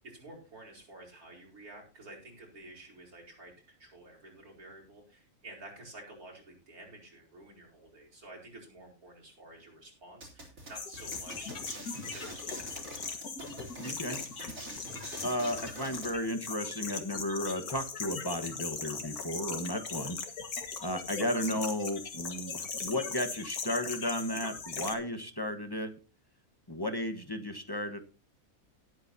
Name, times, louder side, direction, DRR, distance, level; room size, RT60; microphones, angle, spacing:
voice 1, 0.0-3.5 3.8-13.3, right 2 dB, 85° right, 0 dB, 5.1 m, -51 dB
sound 1, 10.2-16.1, right 1 dB, 65° right, 4.5 m, -46 dB
sound 2, 10.8-25.0, left 5 dB, 90° left, 2.2 m, -39 dB
voice 2, 13.8-14.2 15.2-20.2 20.8-25.9 26.7-28.0, left 1 dB, 15° left, 8 dB, 1.2 m, -34 dB
19.0 x 8.9 x 2.8 m, 0.33 s
omnidirectional pair, 1.5 m